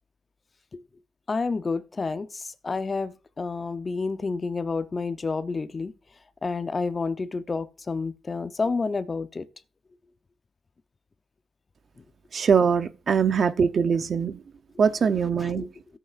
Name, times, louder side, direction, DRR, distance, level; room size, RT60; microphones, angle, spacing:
voice 1, 1.3-5.9 6.4-9.4 14.8-14.9 15.4-15.7, left 4 dB, 35° left, 0.7 m, -29 dB
voice 2, 12.3-14.4 14.8-15.7, right 6 dB, 55° right, 0.7 m, -22 dB
15.5 x 8.1 x 2.5 m
cardioid pair, 80°, 0 cm